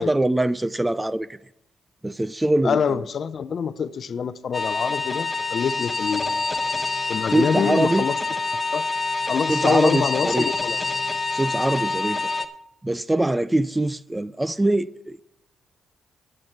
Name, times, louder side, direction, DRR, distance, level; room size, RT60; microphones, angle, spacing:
voice 1, 0.0-1.4 2.0-3.0 7.3-8.1 9.5-10.5 11.3-12.3 12.8-15.2, right 1 dB, 15° right, 0.4 m, -23 dB
voice 2, 2.6-6.4 7.1-8.2 8.7-8.8 9.3-10.8, left 6 dB, 60° left, 0.5 m, -25 dB
sound 1, 4.5-12.4, left 3 dB, 25° left, 1.1 m, -26 dB
12.0 x 8.0 x 5.9 m
cardioid pair, 65°, 0 cm